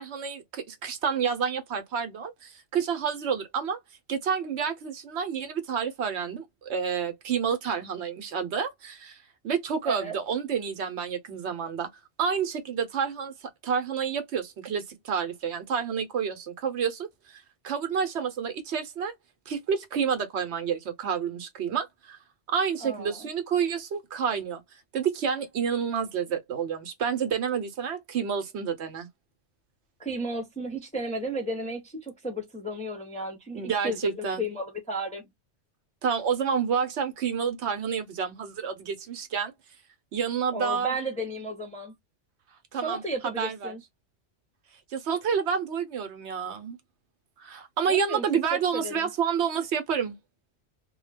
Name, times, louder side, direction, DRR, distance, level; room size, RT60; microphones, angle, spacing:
voice 1, 0.0-3.8 4.1-9.2 9.4-11.9 12.2-19.1 19.5-22.2 22.5-29.1 33.5-34.4 36.0-39.5 40.1-41.0 42.7-43.8 44.9-46.8 47.4-50.2, right 7 dB, 75° right, 1.0 m, -29 dB
voice 2, 9.8-10.2 22.8-23.3 30.0-35.2 40.5-41.9 42.8-43.8 47.9-48.2 48.5-49.1, right 1 dB, 10° left, 0.5 m, -33 dB
2.2 x 2.2 x 3.2 m
omnidirectional pair, 1.2 m